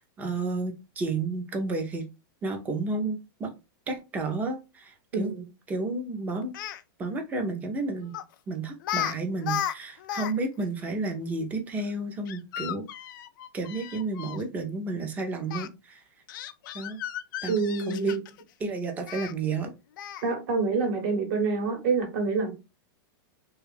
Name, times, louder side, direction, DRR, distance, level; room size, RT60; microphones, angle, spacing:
voice 1, 0.2-2.1 2.4-3.5 3.9-5.3 5.7-6.5 7.0-8.2 8.5-12.8 13.5-16.0 16.7-17.0 17.4-17.6 17.9-18.2 18.6-19.7, right 3 dB, 15° right, 0.5 m, -31 dB
voice 2, 5.1-5.5 17.5-18.2 20.2-22.5, right 4 dB, 45° right, 1.1 m, -27 dB
Speech, 6.4-6.8 8.1-8.3 8.8-9.1 9.4-10.3 10.6-10.7 12.3-14.4 15.5-15.7 16.3-18.4 19.1-19.3 20.0-20.3, left 11 dB, 60° left, 0.4 m, -34 dB
3.3 x 2.3 x 3.3 m
supercardioid pair, 160°, 12 cm